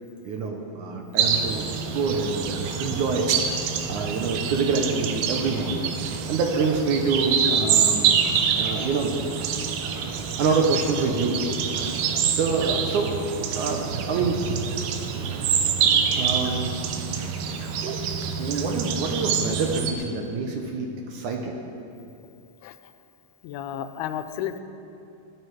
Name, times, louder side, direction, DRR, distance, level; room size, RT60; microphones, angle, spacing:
voice 1, 0.3-3.3 3.9-5.9 6.3-8.1 8.6-9.1 10.4-11.4 12.3-13.2 13.5-14.5 16.2-16.8 18.4-21.6, right 4 dB, 70° right, 2 dB, 2.0 m, -26 dB
sound 1, 1.2-19.9, right 7 dB, 85° right, 2.8 m, -26 dB
voice 2, 23.4-24.6, left 10 dB, 90° left, 10 dB, 2.6 m, -32 dB
16.0 x 13.0 x 4.7 m, 2.7 s
omnidirectional pair, 4.4 m